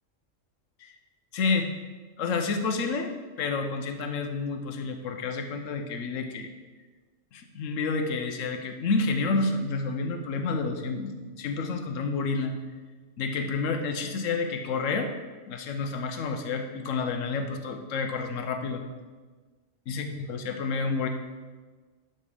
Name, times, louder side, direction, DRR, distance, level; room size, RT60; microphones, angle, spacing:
voice 1, 1.3-1.7 2.2-3.1 3.4-6.5 7.3-12.5 13.2-15.1 15.5-18.8 19.9-21.1, left 4 dB, 75° left, 6 dB, 1.2 m, -29 dB
12.0 x 4.2 x 5.0 m, 1.4 s
omnidirectional pair, 1.4 m